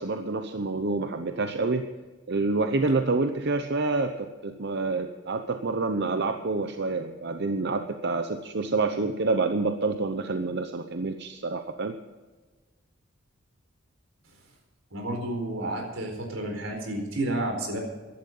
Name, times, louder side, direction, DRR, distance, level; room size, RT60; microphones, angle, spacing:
voice 1, 0.0-1.9 2.3-12.0, right 3 dB, 60° right, 7 dB, 0.8 m, -27 dB
voice 2, 14.9-17.8, right 1 dB, 85° right, 2 dB, 4.4 m, -31 dB
15.0 x 12.0 x 5.5 m, 1.3 s
head